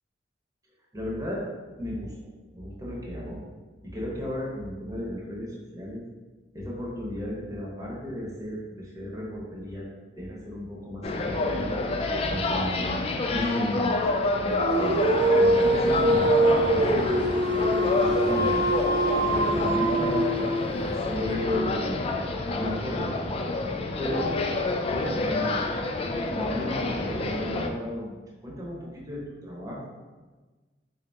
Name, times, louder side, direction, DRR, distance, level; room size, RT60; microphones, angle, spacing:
voice 1, 0.9-1.5 1.8-2.1 2.5-3.4 3.9-6.0 6.5-9.9 10.2-11.8 12.3-14.0 14.3-15.0 15.4-17.0 17.6-18.6 19.3-20.1 20.8-22.1 22.5-23.4 24.0-24.3 24.9-25.6 26.3-28.1 28.4-30.0, left 1 dB, 20° right, -4 dB, 0.9 m, -34 dB
sound 1, 11.0-27.7, left 2 dB, 35° left, 0.3 m, -28 dB
Dog, 14.5-20.9, right 1 dB, 65° right, 0.5 m, -24 dB
3.9 x 2.7 x 3.4 m, 1.3 s
head